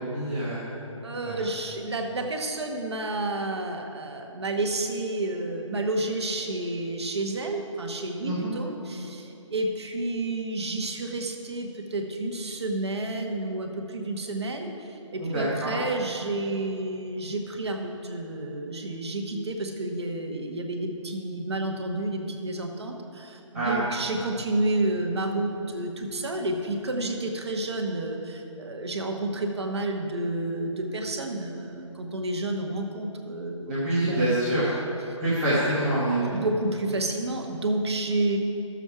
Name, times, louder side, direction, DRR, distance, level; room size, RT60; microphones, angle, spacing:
voice 1, 0.1-0.7 1.2-1.4 8.2-8.5 15.2-15.7 23.5-23.8 24.1-24.2 33.7-34.6 35.2-36.2, right 1 dB, 10° right, -13 dB, 1.3 m, -26 dB
voice 2, 1.0-34.3 35.1-35.2 36.3-38.4, right 2 dB, 55° right, 3 dB, 1.3 m, -30 dB
12.5 x 7.2 x 4.7 m, 2.9 s
hypercardioid pair, 170°, 17 cm